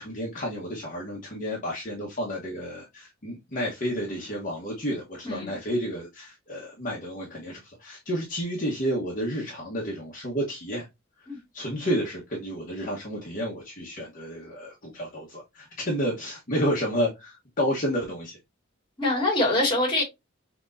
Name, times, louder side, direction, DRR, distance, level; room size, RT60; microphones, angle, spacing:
voice 1, 0.0-10.9 11.3-18.4, equal, 45° left, 1.1 m, -31 dB
voice 2, 5.2-5.6 11.3-11.4 19.0-20.0, left 1 dB, 25° left, 2.1 m, -24 dB
6.0 x 3.0 x 2.6 m
head